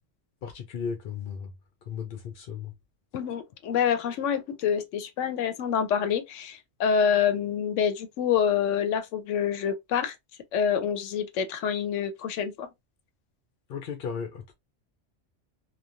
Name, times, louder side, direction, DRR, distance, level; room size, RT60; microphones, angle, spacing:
voice 1, 0.4-1.5 1.9-2.7 13.7-14.5, left 6 dB, 60° left, 0.7 m, -35 dB
voice 2, 3.1-10.1 10.5-12.7, left 7 dB, 85° left, 0.9 m, -27 dB
3.0 x 2.2 x 2.5 m
omnidirectional pair, 1.2 m